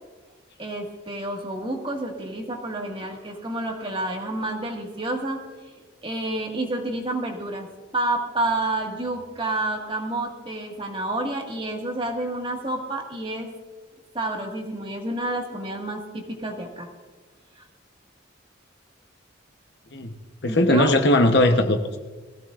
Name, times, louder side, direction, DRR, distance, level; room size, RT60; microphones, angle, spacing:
voice 1, 0.6-5.7 6.0-7.7 7.9-13.5 14.1-16.9 17.6-17.7 20.5-20.9, right 2 dB, 25° right, 1 dB, 1.8 m, -29 dB
voice 2, 19.9-22.0, left 1 dB, 55° left, 5 dB, 1.0 m, -20 dB
22.0 x 15.5 x 2.5 m, 1.4 s
head